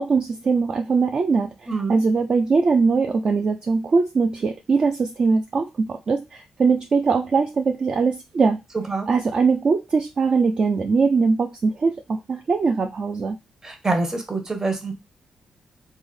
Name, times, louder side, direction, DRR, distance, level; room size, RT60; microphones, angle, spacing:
voice 1, 0.0-8.6 9.1-13.4, right 4 dB, 40° right, 0.3 m, -21 dB
voice 2, 1.7-2.0 8.9-9.1 13.6-14.9, right 3 dB, 25° right, 0.8 m, -25 dB
3.2 x 2.1 x 3.6 m
cardioid pair, 120°, 2 cm